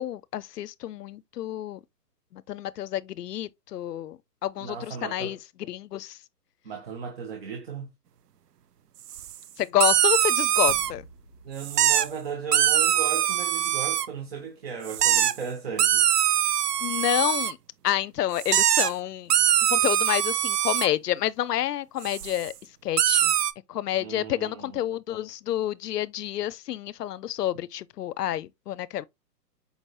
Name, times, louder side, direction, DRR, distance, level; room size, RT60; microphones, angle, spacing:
voice 1, 0.0-1.8 2.3-6.2 9.6-11.1 16.8-17.6 17.8-19.3 19.7-22.5 22.8-23.3 23.7-29.1, left 12 dB, 70° left, 0.5 m, -29 dB
voice 2, 4.6-5.4 6.6-7.9 11.4-16.0 24.0-24.8, right 6 dB, 40° right, 0.8 m, -36 dB
sound 1, 9.1-9.3 9.8-10.9 11.6-12.1 12.5-14.1 14.9-15.3 15.8-17.5 18.4-18.9 19.3-20.9 22.0-22.5 23.0-23.5, right 11 dB, 70° right, 0.6 m, -22 dB
sound 2, 10.7-13.2, left 1 dB, 25° left, 0.5 m, -49 dB
5.2 x 3.2 x 2.6 m
hypercardioid pair, 155°, 49 cm